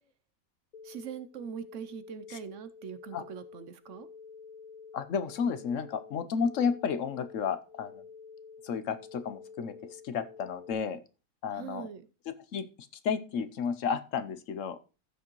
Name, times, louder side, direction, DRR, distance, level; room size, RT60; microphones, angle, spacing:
sound 1, 0.7-10.7, left 5 dB, 40° left, 0.5 m, -50 dB
voice 1, 0.8-4.1 11.5-12.1, right 7 dB, 60° right, 12 dB, 0.9 m, -42 dB
voice 2, 4.9-8.0 8.6-11.0 11.4-11.9 12.5-12.7 13.0-14.8, left 6 dB, 60° left, 12 dB, 1.0 m, -32 dB
14.5 x 6.2 x 3.0 m, 0.33 s
omnidirectional pair, 1.7 m